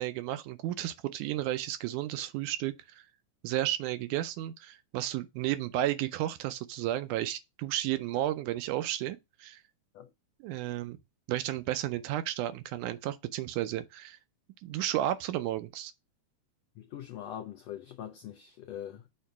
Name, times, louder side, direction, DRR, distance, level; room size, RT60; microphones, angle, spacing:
voice 1, 0.0-3.0 3.4-9.6 10.4-11.0 11.3-14.2 14.6-15.9, right 13 dB, 80° right, 1.9 m, -33 dB
voice 2, 16.8-19.0, left 10 dB, 90° left, 1.4 m, -42 dB
6.5 x 2.8 x 5.7 m
omnidirectional pair, 3.7 m